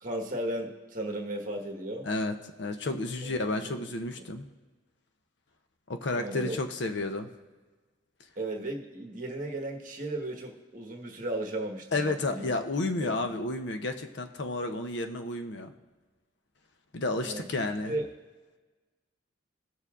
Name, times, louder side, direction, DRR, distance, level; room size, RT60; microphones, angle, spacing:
voice 1, 0.0-2.1 3.2-3.7 6.2-6.6 8.4-12.5 13.0-13.3 17.2-17.5 17.9-18.0, right 1 dB, 40° right, 1 dB, 1.3 m, -35 dB
voice 2, 2.0-4.5 5.9-7.3 11.9-15.7 16.9-18.0, left 2 dB, 60° left, 7 dB, 0.7 m, -31 dB
18.0 x 6.8 x 2.4 m, 1.3 s
head